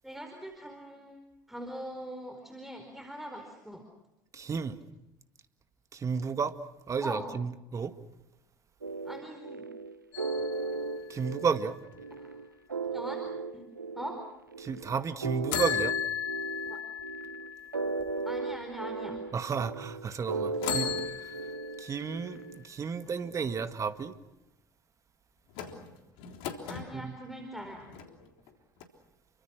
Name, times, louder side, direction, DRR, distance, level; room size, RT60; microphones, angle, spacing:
voice 1, 0.0-1.2 1.5-3.8 7.0-7.2 9.0-9.6 12.2-12.4 12.9-13.6 14.0-14.2 16.7-16.8 18.3-19.2 26.7-27.9, equal, ahead, 4.5 m, -41 dB
voice 2, 4.3-4.8 5.9-6.6 6.9-8.0 11.1-11.8 14.6-16.0 19.3-21.5 21.8-24.2 26.9-27.2, right 6 dB, 30° right, 1.9 m, -32 dB
sound 1, 8.8-22.6, right 3 dB, 90° right, 0.9 m, -36 dB
sound 2, 10.1-12.0 15.5-18.6 19.2-19.3 20.5-22.3 25.5-26.9 27.6-28.5 28.8-28.9, left 9 dB, 60° left, 3.5 m, -37 dB
29.5 x 24.5 x 6.1 m
figure-of-eight pair, 70°, 10 cm